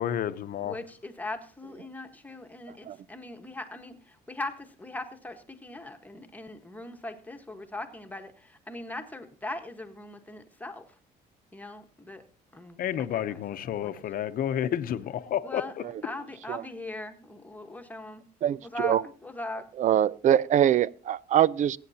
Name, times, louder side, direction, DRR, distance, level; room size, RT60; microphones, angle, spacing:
voice 1, 0.0-0.7 12.8-15.6, left 10 dB, 60° left, 0.9 m, -30 dB
voice 2, 0.6-11.0 11.5-12.2 12.5-14.1 15.4-15.7 16.0-18.2 18.6-19.7, left 2 dB, 10° left, 1.4 m, -40 dB
voice 3, 19.8-21.8, right 10 dB, 45° right, 0.5 m, -22 dB
22.0 x 9.0 x 2.9 m
cardioid pair, 110°, 17 cm